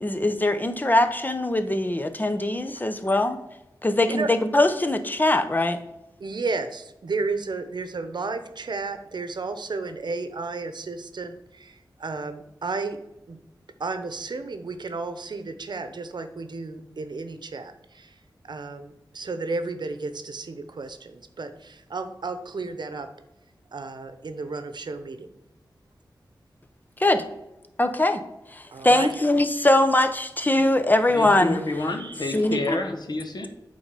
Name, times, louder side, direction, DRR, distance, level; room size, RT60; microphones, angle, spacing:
voice 1, 0.0-3.4 3.8-5.8 27.0-27.2 27.8-28.2 28.5-31.6 32.3-32.8, left 1 dB, 25° left, 9 dB, 0.9 m, -22 dB
voice 2, 6.2-13.0 13.3-13.4 13.8-23.1 23.7-25.3 28.7-29.2 32.0-32.2, right 3 dB, 75° right, 9 dB, 0.8 m, -33 dB
voice 3, 31.1-33.5, left 2 dB, 65° left, 5 dB, 1.3 m, -29 dB
8.8 x 3.9 x 6.7 m, 0.94 s
wide cardioid pair, 80°, 8 cm